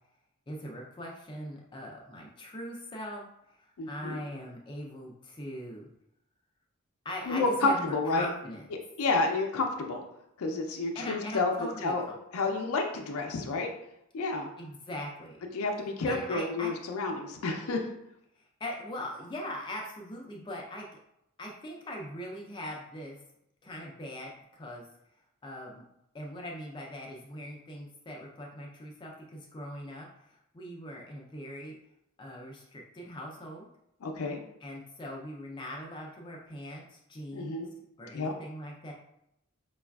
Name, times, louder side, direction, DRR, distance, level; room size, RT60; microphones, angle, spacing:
voice 1, 0.5-3.2 3.5-5.8 7.0-8.7 10.9-12.1 14.6-15.4 16.0-16.7 18.4-20.9 21.4-23.2 23.6-24.9 25.4-25.8 26.1-31.7 32.2-33.7 34.6-37.6 38.0-38.9, left 1 dB, 20° left, -1 dB, 0.4 m, -41 dB
voice 2, 3.8-4.2 7.3-8.3 9.0-10.0 10.4-12.0 12.3-13.7 14.1-14.5 15.5-17.8 34.0-34.4 37.3-37.7 38.1-38.3, left 3 dB, 80° left, 2 dB, 0.4 m, -30 dB
4.8 x 2.3 x 2.2 m, 0.80 s
head